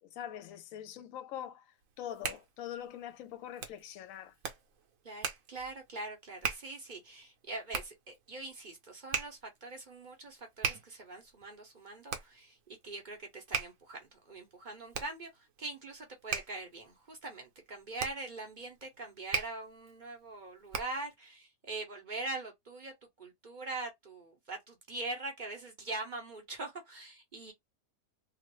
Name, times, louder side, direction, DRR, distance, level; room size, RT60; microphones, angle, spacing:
voice 1, 0.0-4.3, left 10 dB, 65° left, 0.9 m, -43 dB
Hands, 1.8-21.1, right 7 dB, 60° right, 1.0 m, -41 dB
voice 2, 5.0-27.5, right 2 dB, 40° right, 0.7 m, -43 dB
2.9 x 2.4 x 3.0 m
omnidirectional pair, 1.7 m